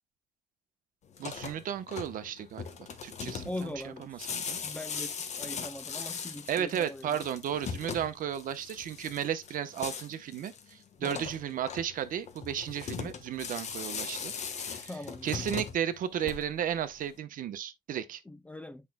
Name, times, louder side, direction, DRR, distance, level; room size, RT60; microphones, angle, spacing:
sound 1, 1.1-16.8, left 6 dB, 45° left, 1.3 m, -40 dB
voice 1, 1.2-4.6 6.5-14.3 14.6-15.0 15.2-18.2, right 9 dB, 55° right, 0.9 m, -34 dB
voice 2, 3.4-4.3 4.6-7.2 11.0-11.3 14.8-15.5 18.3-18.9, left 1 dB, 10° left, 0.4 m, -41 dB
8.4 x 5.4 x 2.2 m
cardioid pair, 160°, 16 cm